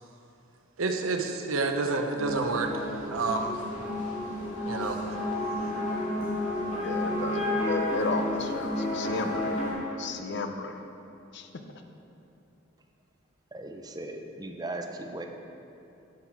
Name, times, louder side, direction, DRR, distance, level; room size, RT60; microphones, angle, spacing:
voice 1, 0.8-3.6 4.7-5.0 5.4-5.5, right 3 dB, 90° right, 4 dB, 0.7 m, -29 dB
sound 1, 2.2-9.7, left 1 dB, 35° left, 2.0 m, -31 dB
voice 2, 6.8-9.6 10.0-10.7 11.3-11.5, left 3 dB, 55° left, 6 dB, 0.6 m, -33 dB
voice 3, 13.5-15.3, right 2 dB, 20° right, 4 dB, 0.5 m, -38 dB
10.5 x 6.0 x 4.6 m, 2.8 s
head